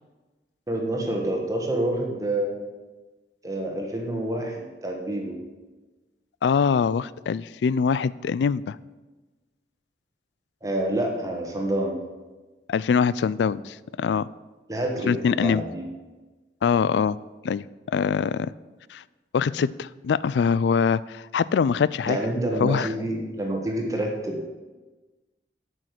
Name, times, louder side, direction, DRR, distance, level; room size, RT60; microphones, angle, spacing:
voice 1, 0.7-2.6 3.4-5.3 10.6-12.0 14.7-15.8 22.0-24.5, right 1 dB, 20° right, 1 dB, 1.4 m, -28 dB
voice 2, 6.4-8.8 12.7-14.3 15.1-15.6 16.6-17.2 17.4-18.5 18.9-19.0 19.3-22.2 22.6-22.9, left 6 dB, 75° left, 19 dB, 0.3 m, -23 dB
8.6 x 6.4 x 8.1 m, 1.2 s
head